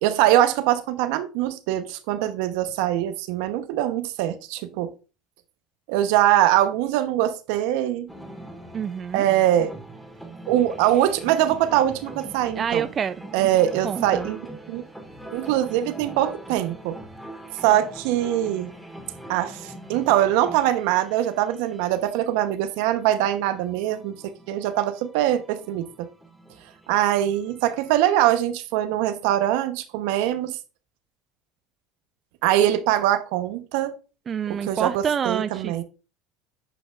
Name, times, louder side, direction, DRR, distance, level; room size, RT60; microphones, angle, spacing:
voice 1, 0.0-4.9 5.9-8.1 9.1-9.7 10.5-12.9 13.3-14.4 14.7-14.8 15.3-17.0 17.6-18.7 19.3-26.1 26.9-30.6 32.4-33.9 34.5-35.8, right 12 dB, 75° right, 0.9 m, -23 dB
sound 1, 8.1-28.0, right 1 dB, ahead, 1.8 m, -43 dB
voice 2, 8.7-9.3 12.6-13.3 13.8-14.3 34.3-35.7, right 7 dB, 35° right, 0.3 m, -27 dB
8.9 x 5.2 x 2.4 m
hypercardioid pair, 85°, 0 cm